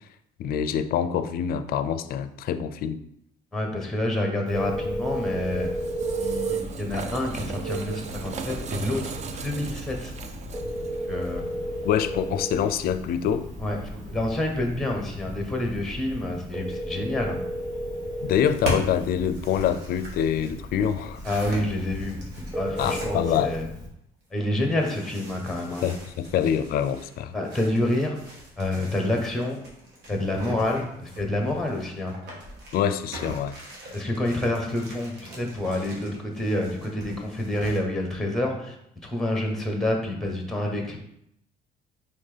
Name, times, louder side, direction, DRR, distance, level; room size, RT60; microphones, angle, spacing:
voice 1, 0.4-3.0 11.8-13.5 18.2-21.2 22.8-23.5 25.8-27.3 32.7-33.6, left 9 dB, 60° left, 11 dB, 0.4 m, -25 dB
voice 2, 3.5-5.7 6.2-9.2 9.4-10.1 11.1-11.5 13.6-17.4 21.2-23.7 24.3-25.9 27.3-28.2 28.6-29.6 30.1-32.1 33.9-38.7 39.0-41.0, left 1 dB, ahead, 2 dB, 0.9 m, -28 dB
Telephone, 4.5-23.9, equal, 20° right, 1.3 m, -35 dB
sound 1, 5.0-16.5, right 7 dB, 45° right, 0.5 m, -38 dB
sound 2, 18.3-23.6 24.6-37.8, equal, 85° right, 1.4 m, -39 dB
4.3 x 3.4 x 3.3 m, 0.75 s
cardioid pair, 110°, 17 cm